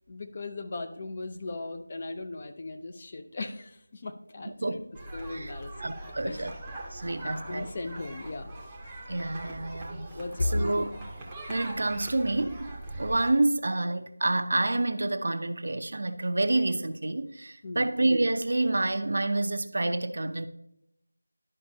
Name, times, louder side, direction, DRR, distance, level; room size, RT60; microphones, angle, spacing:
voice 1, 0.1-4.8 5.1-5.9 6.2-6.5 7.5-8.5 10.1-10.6 17.6-17.9, left 2 dB, 30° left, 5 dB, 0.6 m, -36 dB
sound 1, 4.9-13.3, right 1 dB, 10° right, 0.8 m, -41 dB
voice 2, 5.8-6.5 6.9-7.7 9.1-10.1 10.5-10.9 11.5-20.5, right 2 dB, 55° right, 9 dB, 0.6 m, -28 dB
12.0 x 5.2 x 2.7 m, 0.79 s
figure-of-eight pair, 170°, 0 cm